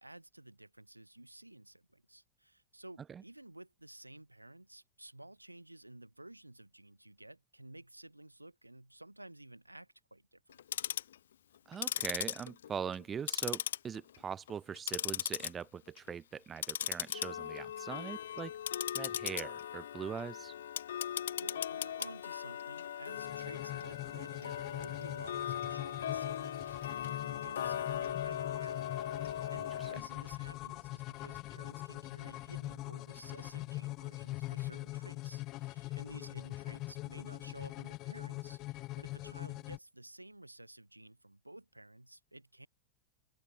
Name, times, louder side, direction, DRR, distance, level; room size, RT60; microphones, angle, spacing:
voice 1, 0.0-10.6 21.1-42.7, right 1 dB, 85° right, 4.7 m, -53 dB
Tick-tock, 10.5-11.1 11.7-13.0 13.3-14.2 14.5-15.5 15.9-16.1 16.6-30.0, left 10 dB, 65° left, 0.3 m, -38 dB
voice 2, 11.7-18.5 18.9-20.5 29.8-30.1, right 7 dB, 20° right, 0.9 m, -42 dB
sound 1, 23.1-39.8, left 18 dB, 40° left, 0.8 m, -43 dB
figure-of-eight pair, 90°, 0 cm